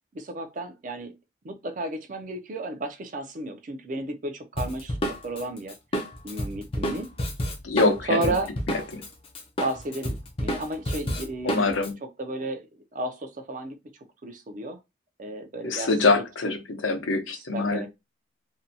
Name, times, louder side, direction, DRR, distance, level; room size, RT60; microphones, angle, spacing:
voice 1, 0.1-1.1 1.4-5.7 6.2-7.1 8.1-8.5 9.6-11.7 12.0-12.7 12.9-13.8 14.2-14.8 15.2-15.9 17.3-17.9, right 2 dB, 40° right, 0.5 m, -33 dB
Drum kit, 4.6-9.1 9.3-11.9, equal, 30° left, 0.4 m, -30 dB
voice 2, 7.6-8.3 8.9-9.0 11.4-11.9 15.6-17.8, left 3 dB, 90° left, 0.7 m, -24 dB
2.6 x 2.2 x 2.7 m
head